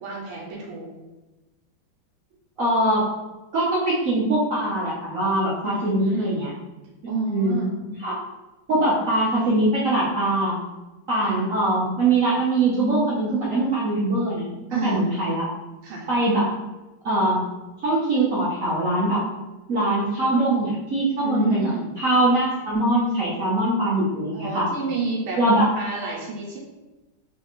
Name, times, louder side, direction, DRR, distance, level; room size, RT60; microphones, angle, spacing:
voice 1, 0.0-0.9 5.6-6.4 7.1-7.7 8.7-8.9 11.2-11.4 14.7-15.0 15.8-16.1 21.2-21.9 24.3-25.4 25.8-26.6, right 3 dB, 80° right, -2 dB, 1.6 m, -29 dB
voice 2, 2.6-3.1 3.5-6.5 7.3-7.7 8.0-8.2 8.7-10.6 11.1-14.5 14.8-15.5 16.1-16.5 17.0-17.4 17.8-19.2 19.7-21.7 22.0-24.7 25.4-25.7, right 2 dB, 60° right, -7 dB, 0.8 m, -22 dB
3.7 x 3.3 x 3.0 m, 1.1 s
omnidirectional pair, 2.4 m